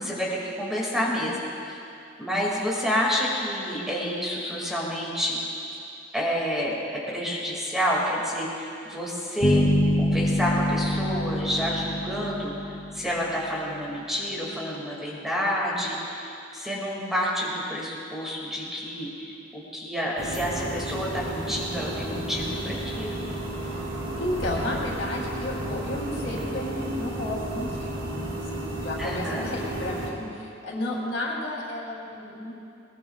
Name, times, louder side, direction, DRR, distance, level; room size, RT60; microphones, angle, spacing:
voice 1, 0.1-1.4 1.7-1.8 2.2-5.4 6.1-9.7 10.0-12.5 12.9-23.3 29.0-29.5, equal, ahead, -5 dB, 2.3 m, -29 dB
sound 1, 9.4-13.4, equal, 30° left, 2.7 m, -25 dB
sound 2, 20.2-30.1, right 1 dB, 75° right, 2.8 m, -33 dB
voice 2, 22.1-22.6 23.6-32.5, left 1 dB, 70° left, -3 dB, 3.4 m, -33 dB
20.5 x 20.5 x 2.4 m, 2.7 s
head